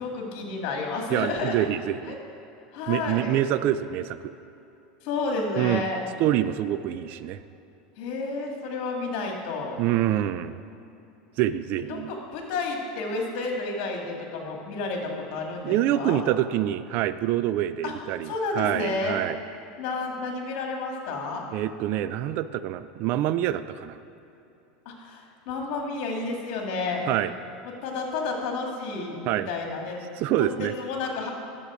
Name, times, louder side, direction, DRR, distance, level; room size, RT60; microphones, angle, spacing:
voice 1, 0.0-1.6 2.0-2.2 2.7-3.4 5.0-6.0 8.0-9.8 11.9-16.2 17.8-17.9 18.2-19.2 19.8-21.4 24.9-27.0 27.8-30.0 30.4-31.3, left 3 dB, 60° left, 1 dB, 2.1 m, -31 dB
voice 2, 1.1-2.2 2.9-4.2 5.6-5.8 6.2-7.4 9.8-10.6 11.4-12.1 15.6-19.4 21.5-24.0 27.1-27.3 29.3-29.5 30.2-30.7, right 12 dB, 50° right, 14 dB, 0.3 m, -26 dB
10.5 x 7.3 x 5.0 m, 2.9 s
supercardioid pair, 130°, 4 cm